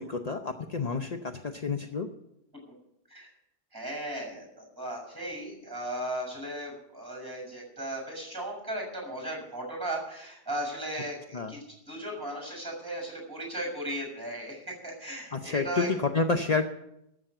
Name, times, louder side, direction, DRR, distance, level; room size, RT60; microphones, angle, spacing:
voice 1, 0.0-2.1 11.3-11.5 15.3-16.7, left 4 dB, 50° left, 5 dB, 0.4 m, -29 dB
voice 2, 3.7-15.9, right 1 dB, 10° right, 1 dB, 6.4 m, -36 dB
13.5 x 7.5 x 8.8 m, 0.80 s
omnidirectional pair, 1.8 m